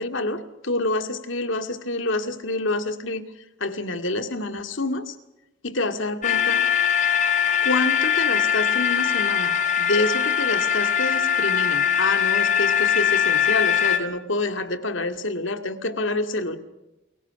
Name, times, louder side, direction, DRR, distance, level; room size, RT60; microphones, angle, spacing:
voice 1, 0.0-3.2 3.6-5.2 5.6-6.7 7.6-16.6, left 2 dB, 70° left, 8 dB, 2.2 m, -27 dB
sound 1, 6.2-14.0, left 8 dB, 35° left, 2.1 m, -21 dB
29.5 x 22.5 x 5.9 m, 0.96 s
head